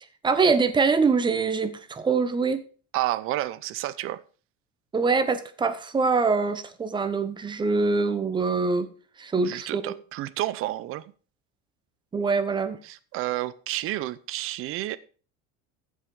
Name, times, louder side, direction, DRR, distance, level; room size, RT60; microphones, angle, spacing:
voice 1, 0.2-2.6 4.9-8.9 9.2-9.9 12.1-12.8, right 4 dB, 15° right, 0.9 m, -24 dB
voice 2, 2.9-4.2 9.4-11.0 12.8-15.0, right 15 dB, 40° right, 0.7 m, -30 dB
14.5 x 5.7 x 4.8 m
cardioid pair, 160°, 33 cm